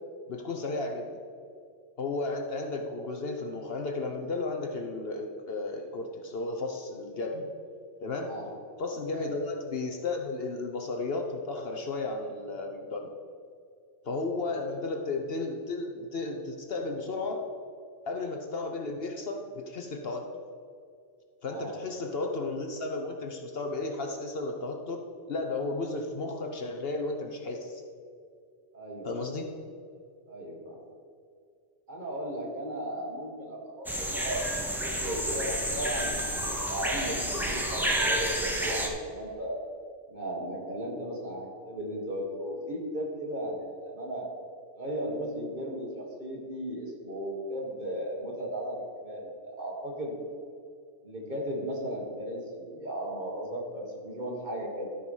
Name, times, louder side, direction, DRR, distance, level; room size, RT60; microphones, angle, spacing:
voice 1, 0.3-1.1 2.0-7.5 8.0-8.3 8.8-13.1 14.1-17.4 18.1-20.2 21.4-27.8 29.0-29.5, left 3 dB, 55° left, 3 dB, 1.0 m, -34 dB
voice 2, 28.7-29.3 30.3-30.8 31.9-39.6 40.1-44.3 44.7-50.2 51.0-54.9, equal, 40° right, -2 dB, 1.9 m, -36 dB
sound 1, 33.9-38.9, right 1 dB, ahead, 0.9 m, -30 dB
12.5 x 4.8 x 5.5 m, 2.3 s
omnidirectional pair, 1.3 m